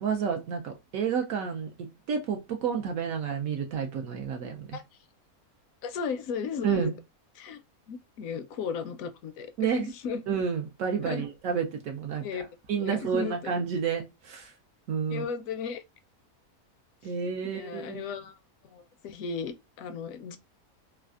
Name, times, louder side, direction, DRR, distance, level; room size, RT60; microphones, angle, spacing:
voice 1, 0.0-4.7 6.6-6.9 9.6-9.9 10.3-12.4 12.7-14.5 14.9-15.2 17.0-18.1, right 7 dB, 70° right, 0.9 m, -30 dB
voice 2, 5.8-6.9 7.3-7.6 7.9-10.2 11.0-11.3 12.2-12.5 12.8-13.5 15.1-15.8 17.0-18.4 18.7-20.4, left 6 dB, 70° left, 0.9 m, -35 dB
3.3 x 2.3 x 2.3 m
omnidirectional pair, 1.6 m